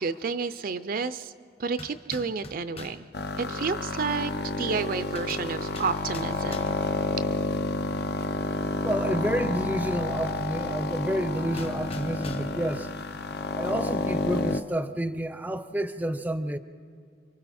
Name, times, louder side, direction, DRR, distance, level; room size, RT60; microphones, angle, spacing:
voice 1, 0.0-1.3 1.6-3.1 3.4-6.6, right 5 dB, 55° right, 0.5 m, -30 dB
sound 1, 1.7-3.1 4.9-7.0 11.5-12.7, left 2 dB, 35° left, 1.1 m, -44 dB
sound 2, 3.1-14.6, left 3 dB, 65° left, 0.7 m, -30 dB
voice 2, 8.8-12.9 13.6-16.6, right 1 dB, 10° right, 0.6 m, -29 dB
29.5 x 23.5 x 4.3 m
head